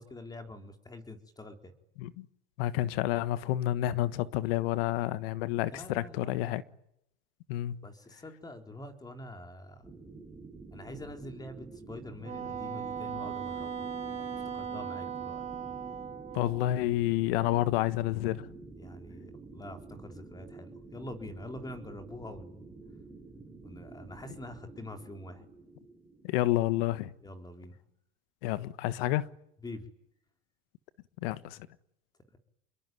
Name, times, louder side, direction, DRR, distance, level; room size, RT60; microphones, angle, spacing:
voice 1, 0.0-1.7 5.7-6.6 7.8-9.8 10.7-13.9 14.2-15.4 18.8-22.7 23.6-25.4 27.2-27.8 29.6-29.9, left 1 dB, 15° left, 4.0 m, -45 dB
voice 2, 2.6-6.6 7.5-7.8 16.3-18.5 26.2-27.1 28.4-29.3 31.2-31.6, left 15 dB, 75° left, 1.4 m, -29 dB
sound 1, 9.8-27.5, right 3 dB, 5° right, 3.7 m, -49 dB
Wind instrument woodwind instrument, 12.2-16.7, right 7 dB, 25° right, 5.0 m, -38 dB
28.0 x 22.5 x 9.3 m
supercardioid pair, 120°, 30 cm